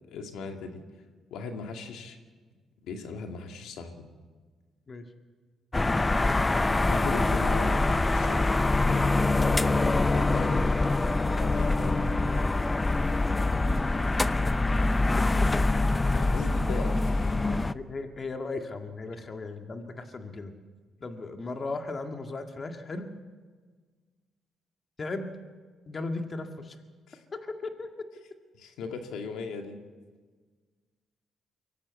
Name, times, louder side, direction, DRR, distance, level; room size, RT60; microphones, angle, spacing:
voice 1, 0.1-0.8 1.3-2.2 2.8-4.0 6.7-8.6 10.1-10.7 11.3-12.5 16.1-17.4 27.1-27.2 28.5-29.8, left 4 dB, 85° left, 4 dB, 2.1 m, -38 dB
sound 1, 5.7-17.7, left 2 dB, 20° left, 0.6 m, -24 dB
voice 2, 17.7-20.5 21.0-23.1 25.0-25.3 25.9-26.8 27.3-27.9, left 3 dB, 35° left, 5 dB, 1.8 m, -36 dB
23.5 x 15.0 x 8.3 m, 1.5 s
cardioid pair, 90°, 0 cm